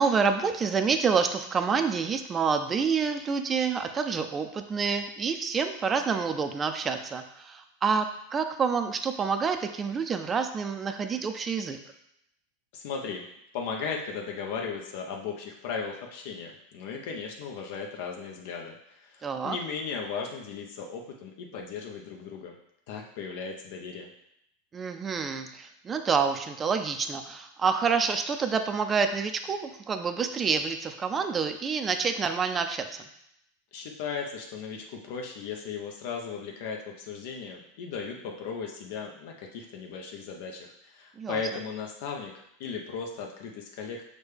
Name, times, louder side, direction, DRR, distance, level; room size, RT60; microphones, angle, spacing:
voice 1, 0.0-8.1 8.3-11.8 19.2-19.6 24.7-32.9 41.2-41.4, right 5 dB, 20° right, 7 dB, 0.4 m, -28 dB
voice 2, 12.7-13.2 13.5-22.5 22.9-24.1 33.7-44.0, left 5 dB, 65° left, 1 dB, 0.6 m, -36 dB
6.2 x 2.2 x 3.3 m, 0.78 s
supercardioid pair, 125°, 0 cm